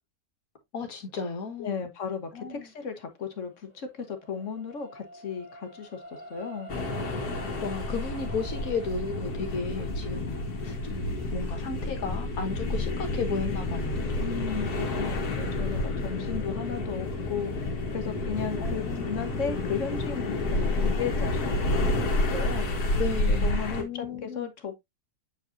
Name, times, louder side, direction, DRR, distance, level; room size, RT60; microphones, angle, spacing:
voice 1, 0.7-1.8 2.3-2.7 7.6-10.4 10.6-14.2 18.6-19.1 22.9-24.5, left 4 dB, 70° left, 1.9 m, -34 dB
voice 2, 1.6-6.0 6.3-6.7 14.2-22.9 23.4-24.8, left 6 dB, 55° left, 1.4 m, -35 dB
sound 1, 3.2-15.7 16.3-16.4, right 3 dB, 25° left, 2.4 m, -49 dB
sound 2, 6.7-23.8, left 2 dB, 90° left, 1.9 m, -29 dB
7.8 x 4.9 x 2.6 m
omnidirectional pair, 1.6 m